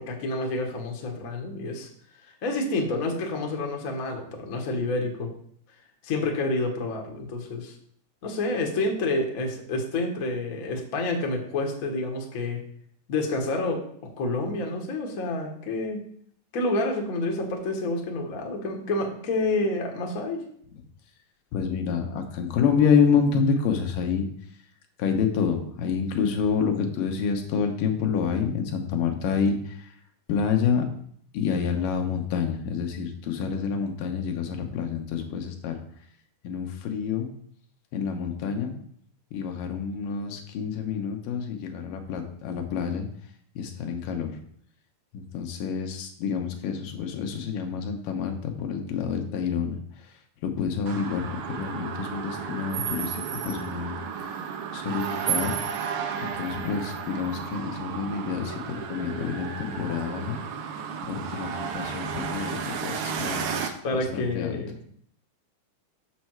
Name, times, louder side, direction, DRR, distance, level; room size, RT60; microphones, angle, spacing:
voice 1, 0.0-1.9 2.2-5.3 6.0-7.7 8.2-12.6 13.1-13.8 14.2-16.0 16.5-20.4 63.8-64.7, left 2 dB, 60° left, 1 dB, 0.8 m, -28 dB
voice 2, 21.5-24.3 25.0-29.9 30.3-30.8 31.3-35.8 36.4-37.3 37.9-38.8 39.3-43.1 43.6-44.3 45.1-49.8 50.4-53.2 53.4-54.0 54.7-55.6 56.2-60.4 61.0-64.6, left 6 dB, 90° left, 4 dB, 2.7 m, -28 dB
sound 1, 50.9-63.7, right 7 dB, 80° right, 2.3 m, -33 dB
6.9 x 6.4 x 4.5 m, 0.64 s
omnidirectional pair, 3.8 m